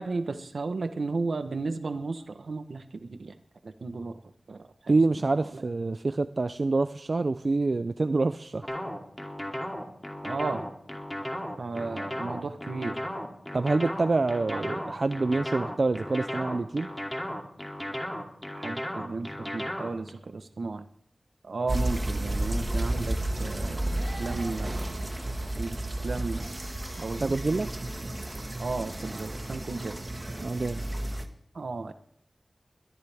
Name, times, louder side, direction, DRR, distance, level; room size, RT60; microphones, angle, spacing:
voice 1, 0.0-3.3 3.6-4.2 4.5-5.0 5.5-5.6 10.2-10.7 11.6-13.0 14.5-14.6 18.5-20.9 21.4-24.9 25.5-26.5 27.0-27.3 28.6-30.0 31.5-31.9, right 3 dB, 85° right, 9 dB, 1.1 m, -34 dB
voice 2, 4.9-8.7 13.5-16.9 27.2-27.7 30.4-30.8, right 3 dB, 60° right, 10 dB, 0.5 m, -26 dB
sound 1, 8.6-20.1, equal, 10° left, 2.7 m, -35 dB
sound 2, 21.7-31.2, right 1 dB, 35° right, 1.6 m, -32 dB
22.0 x 14.0 x 3.5 m, 0.69 s
wide cardioid pair, 65°, 0 cm